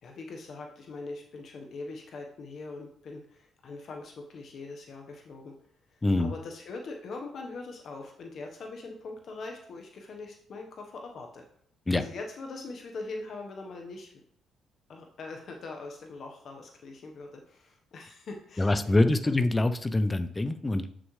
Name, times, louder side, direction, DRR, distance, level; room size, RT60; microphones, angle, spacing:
voice 1, 0.0-5.5 5.9-11.4 11.9-14.1 14.9-19.4, left 3 dB, 60° left, 2 dB, 1.1 m, -42 dB
voice 2, 6.0-6.3 11.9-12.0 18.6-20.9, left 2 dB, 20° left, 11 dB, 0.6 m, -25 dB
7.8 x 6.2 x 3.2 m, 0.63 s
cardioid pair, 90°, 0 cm